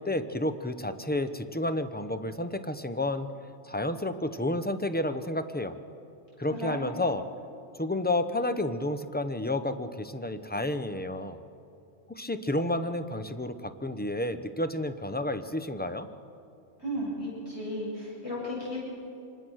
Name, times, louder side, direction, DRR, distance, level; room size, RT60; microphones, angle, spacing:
voice 1, 0.0-3.3 3.6-5.8 6.4-7.2 7.7-11.4 12.1-16.1, left 1 dB, 10° left, 10 dB, 0.7 m, -31 dB
voice 2, 16.8-18.8, equal, 55° left, -6 dB, 8.2 m, -34 dB
27.0 x 20.5 x 6.4 m, 2.6 s
omnidirectional pair, 1.3 m